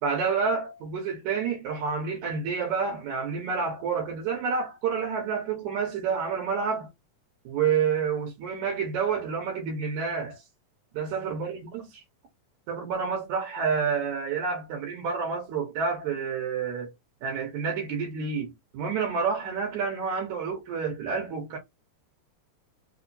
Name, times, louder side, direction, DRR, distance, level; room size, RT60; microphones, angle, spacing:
voice 1, 0.0-6.9 7.5-10.4 10.9-11.8 12.7-16.9 17.2-21.6, right 6 dB, 70° right, 2.2 m, -29 dB
5.2 x 2.0 x 2.6 m
omnidirectional pair, 3.7 m